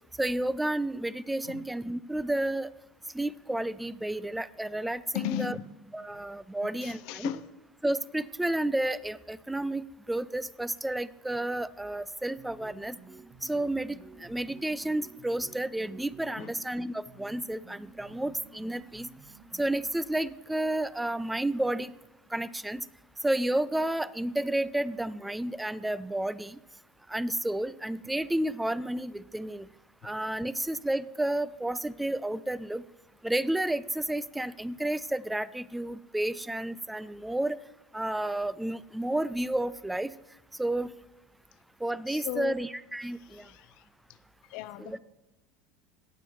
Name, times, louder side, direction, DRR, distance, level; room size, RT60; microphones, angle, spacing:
voice 1, 0.2-2.7 3.1-5.6 5.9-7.3 7.8-13.0 13.4-19.1 19.5-21.9 22.3-22.8 23.2-26.6 27.1-29.7 30.0-32.8 33.2-37.6 37.9-40.1 40.6-40.9 41.8-43.5 44.8-45.0, right 1 dB, 5° right, 18 dB, 0.3 m, -31 dB
voice 2, 5.1-5.7 6.6-7.4 16.4-16.5 42.1-42.5 43.2-43.8 44.4-45.0, left 12 dB, 65° left, 15 dB, 0.5 m, -36 dB
sound 1, 12.4-20.0, right 4 dB, 35° right, 0.9 m, -52 dB
17.5 x 6.9 x 3.1 m, 1.0 s
hypercardioid pair, 90°, 0 cm